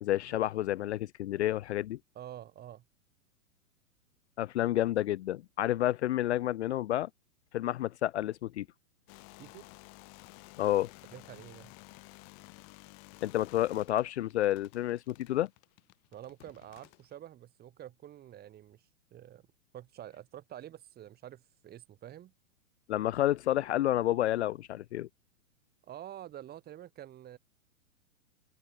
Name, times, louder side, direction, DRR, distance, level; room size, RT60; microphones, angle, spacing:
voice 1, 0.0-2.0 4.4-7.1 7.5-8.7 10.6-10.9 13.2-15.5 22.9-25.1, left 13 dB, 55° left, 0.6 m, -30 dB
voice 2, 2.1-2.8 9.4-9.7 11.1-11.7 16.1-19.4 19.7-22.3 25.8-27.4, right 12 dB, 20° right, 2.8 m, -48 dB
sound 1, 9.1-17.1, left 37 dB, 35° left, 3.3 m, -54 dB
figure-of-eight pair, 110°, 42 cm